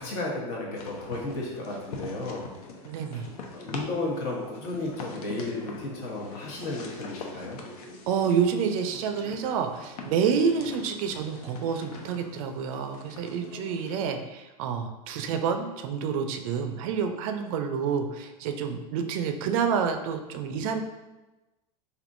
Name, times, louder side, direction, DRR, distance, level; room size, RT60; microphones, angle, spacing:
voice 1, 0.0-2.5 2.9-3.0 3.5-7.6, left 2 dB, 55° left, -2 dB, 1.0 m, -33 dB
sound 1, 0.8-14.1, left 3 dB, 75° left, 0.6 m, -44 dB
voice 2, 2.8-3.3 8.1-20.8, right 6 dB, 60° right, 6 dB, 0.4 m, -28 dB
3.4 x 2.6 x 2.5 m, 1.1 s
hypercardioid pair, 110°, 20 cm